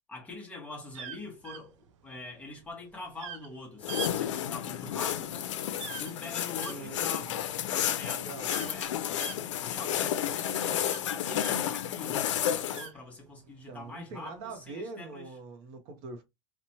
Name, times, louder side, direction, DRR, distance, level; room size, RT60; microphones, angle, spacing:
voice 1, 0.1-5.4 6.0-9.3 9.6-15.3, left 3 dB, 10° left, 0.8 m, -44 dB
sound 1, 0.9-11.9 12.2-13.6 14.3-14.6, right 9 dB, 90° right, 0.5 m, -44 dB
sound 2, 3.8-12.9, left 10 dB, 85° left, 0.5 m, -31 dB
voice 2, 6.6-7.3 8.2-8.6 13.7-16.2, right 3 dB, 40° right, 0.6 m, -43 dB
2.9 x 2.1 x 2.7 m
supercardioid pair, 155°, 15 cm